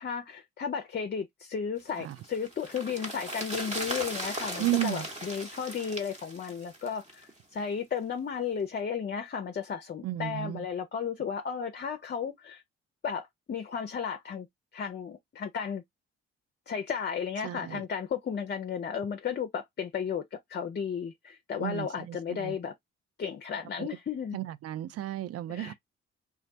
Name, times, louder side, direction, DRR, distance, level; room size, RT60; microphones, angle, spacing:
voice 1, 0.0-12.6 13.0-14.5 14.7-15.8 16.7-22.7 23.2-24.4 25.5-25.7, left 7 dB, 30° left, 0.5 m, -34 dB
sound 1, 1.9-7.3 7.6-7.7, right 1 dB, 20° right, 0.9 m, -38 dB
voice 2, 4.6-5.1 10.0-10.7 17.4-17.8 21.6-22.6 23.8-23.9 24.3-25.7, right 14 dB, 45° right, 0.4 m, -33 dB
2.2 x 2.1 x 2.6 m
hypercardioid pair, 40°, 33 cm